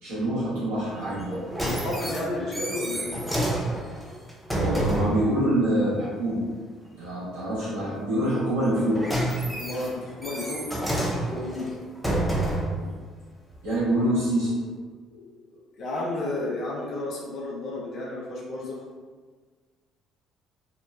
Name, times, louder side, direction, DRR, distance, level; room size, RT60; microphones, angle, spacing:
voice 1, 0.0-1.3 4.5-6.4 6.8-9.1 12.8-12.9 13.6-14.6 15.1-15.2, right 1 dB, 85° right, -11 dB, 1.3 m, -26 dB
sound 1, 1.2-5.2 8.6-12.8 13.5-13.6, right 1 dB, 5° right, 0.7 m, -29 dB
voice 2, 1.6-3.2 9.5-10.7 11.3-11.7 15.8-18.8, left 2 dB, 55° left, -4 dB, 0.6 m, -32 dB
2.9 x 2.1 x 2.3 m, 1.4 s
hypercardioid pair, 60°, 0 cm